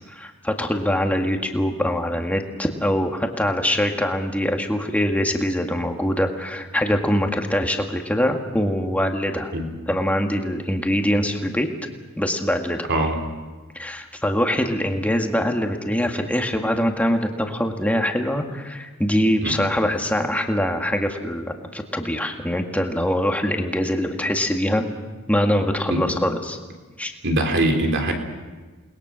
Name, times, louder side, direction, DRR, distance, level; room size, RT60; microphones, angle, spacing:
voice 1, 0.1-9.5 9.9-11.7 12.2-12.9 13.7-24.9 25.3-26.6 27.0-27.1, equal, 5° left, 3 dB, 2.0 m, -23 dB
voice 2, 27.2-28.1, right 1 dB, 55° right, 3 dB, 3.6 m, -22 dB
29.0 x 21.0 x 6.4 m, 1.3 s
head